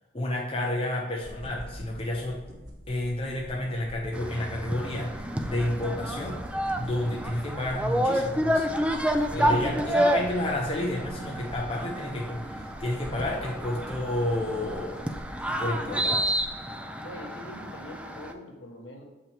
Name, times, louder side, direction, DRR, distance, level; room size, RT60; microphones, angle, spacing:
voice 1, 0.1-2.4 2.9-6.4 6.8-8.7 9.3-15.0 15.6-16.3, left 1 dB, 30° left, -2 dB, 0.8 m, -30 dB
sound 1, 1.2-16.5, equal, 90° right, 2.0 m, -45 dB
sound 2, 4.1-18.3, equal, 5° right, 0.3 m, -30 dB
voice 2, 9.3-10.3 17.0-19.0, left 1 dB, 65° left, 1 dB, 1.3 m, -39 dB
7.0 x 5.6 x 3.5 m, 1.1 s
head